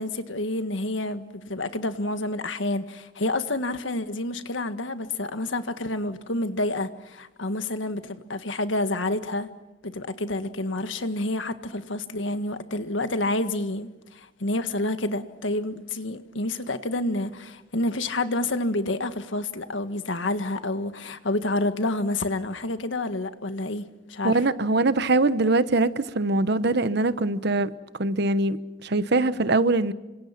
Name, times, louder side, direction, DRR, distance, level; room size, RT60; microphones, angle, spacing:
voice 1, 0.0-9.5 9.8-24.4, left 2 dB, 85° left, 1.7 m, -29 dB
voice 2, 24.2-27.7 28.0-29.9, right 2 dB, 60° right, 1.1 m, -22 dB
28.5 x 26.0 x 5.9 m
head